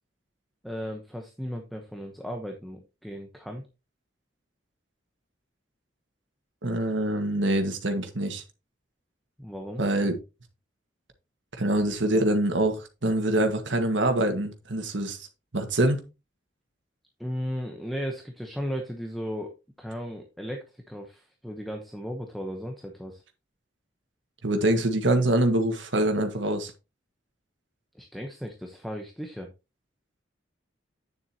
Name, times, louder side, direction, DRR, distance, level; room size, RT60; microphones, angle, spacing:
voice 1, 0.6-3.6 9.4-9.8 17.2-23.2 27.9-29.5, equal, ahead, 2 dB, 1.0 m, -36 dB
voice 2, 6.6-8.4 9.8-10.1 11.6-15.3 15.5-16.0 24.4-26.7, right 1 dB, 85° right, 6 dB, 1.8 m, -25 dB
9.3 x 7.3 x 2.9 m, 0.28 s
head